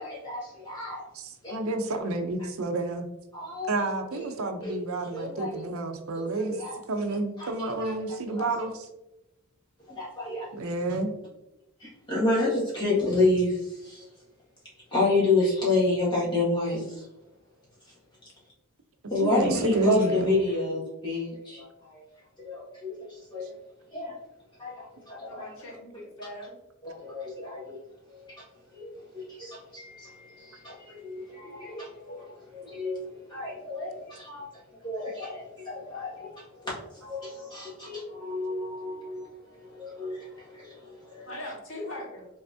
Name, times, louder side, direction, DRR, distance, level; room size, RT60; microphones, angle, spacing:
voice 1, 0.0-1.0 1.4-1.6 3.3-3.9 4.1-4.3 4.6-5.6 6.2-6.8 7.4-8.5 9.9-11.0 11.8-14.1 14.9-17.0 19.1-22.0 22.4-23.5 23.9-24.2 24.6-25.5 26.8-27.8 28.1-28.4 28.7-34.5 34.8-41.3, left 2 dB, 20° left, -7 dB, 1.7 m, -30 dB
voice 2, 1.1-3.1 3.7-6.6 6.9-8.9 10.5-11.1 19.2-20.3, right 2 dB, 70° right, 6 dB, 0.6 m, -29 dB
voice 3, 19.3-19.9 25.3-26.6 41.3-42.3, left 1 dB, 65° left, -3 dB, 1.5 m, -40 dB
5.7 x 3.5 x 2.6 m, 0.91 s
head